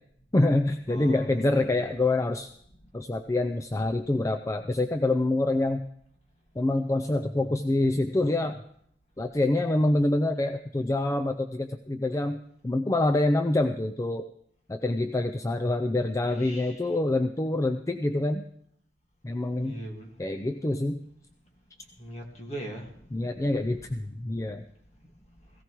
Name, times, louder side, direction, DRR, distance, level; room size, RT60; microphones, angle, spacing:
voice 1, 0.3-2.5 2.9-5.9 6.6-8.6 9.2-14.3 14.7-18.5 19.2-19.8 20.2-21.1 23.1-24.6, left 2 dB, 15° left, 7 dB, 0.4 m, -26 dB
voice 2, 0.9-1.9 16.2-16.9 19.6-20.1 22.0-23.4, right 1 dB, 40° left, 2 dB, 1.8 m, -41 dB
17.5 x 16.0 x 3.1 m, 0.70 s
head